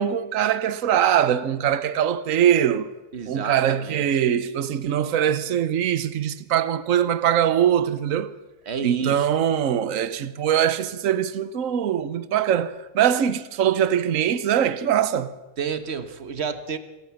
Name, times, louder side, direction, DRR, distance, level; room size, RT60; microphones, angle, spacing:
voice 1, 0.0-2.9 3.3-8.3 8.8-15.3, right 9 dB, 70° right, 1.3 m, -22 dB
voice 2, 3.1-4.1 8.6-9.3 15.6-16.8, right 6 dB, 50° right, 1.5 m, -30 dB
27.5 x 14.0 x 7.1 m
omnidirectional pair, 1.5 m